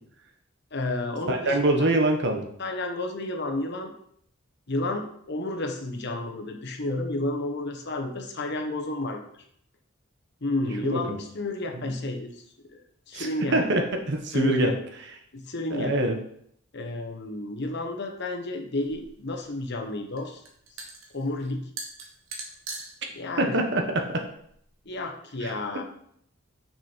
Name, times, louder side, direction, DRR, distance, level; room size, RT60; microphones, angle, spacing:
voice 1, 0.7-1.9 2.6-3.9 4.7-9.3 10.4-12.4 12.7-12.8 13.1-13.6 14.3-14.8 15.3-16.0 16.7-20.4 21.1-21.7 23.1-23.6 24.8-25.8, left 2 dB, 60° left, 4 dB, 1.1 m, -31 dB
voice 2, 1.3-2.5 10.8-11.2 13.1-14.7 15.7-16.2 23.4-24.2 25.4-25.5, right 1 dB, 60° right, 4 dB, 1.3 m, -24 dB
sound 1, 18.8-25.0, right 3 dB, 85° right, 1.6 m, -43 dB
6.5 x 6.1 x 4.5 m, 0.68 s
head